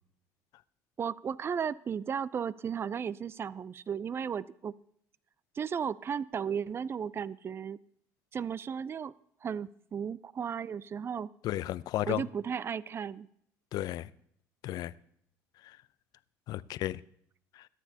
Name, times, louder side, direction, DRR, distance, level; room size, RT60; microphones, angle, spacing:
voice 1, 1.0-4.8 5.6-7.8 8.3-9.1 9.4-11.3 12.1-13.3, right 7 dB, 35° right, 0.4 m, -35 dB
voice 2, 11.4-12.2 13.7-14.1 14.6-14.9 15.6-15.8 16.5-17.0 17.5-17.7, left 14 dB, 60° left, 0.5 m, -33 dB
22.5 x 9.9 x 2.8 m
supercardioid pair, 75°, 8 cm